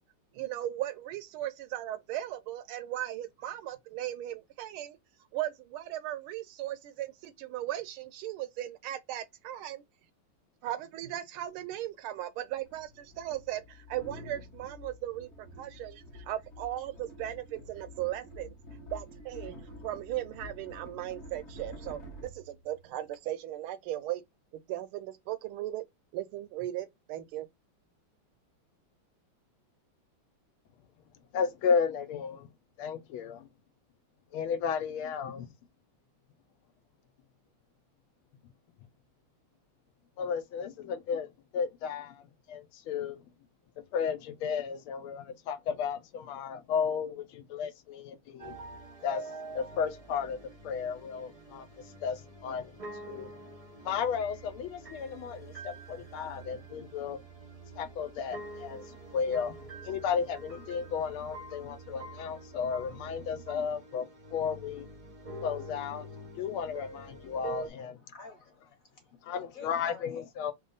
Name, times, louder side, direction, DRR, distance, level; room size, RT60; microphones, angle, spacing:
voice 1, 0.3-5.0 5.3-9.8 10.6-18.5 18.9-19.6 19.8-24.2 24.5-25.8 26.1-27.5, right 13 dB, 80° right, 1.4 m, -37 dB
sound 1, 11.5-11.6 12.6-23.2, left 1 dB, 30° left, 1.1 m, -48 dB
voice 2, 31.3-32.5 32.8-33.5 34.3-35.5 40.2-43.2 43.9-48.6 49.0-49.3 49.5-50.4 50.6-52.7 53.0-53.3 53.8-57.2 57.7-59.5 59.8-64.9 65.4-66.1 66.4-68.0 69.2-70.5, left 6 dB, 80° left, 1.4 m, -33 dB
sound 2, 48.4-67.7, right 2 dB, 40° right, 0.5 m, -46 dB
voice 3, 68.0-70.3, left 5 dB, 50° left, 1.2 m, -51 dB
3.5 x 2.2 x 3.8 m
omnidirectional pair, 2.4 m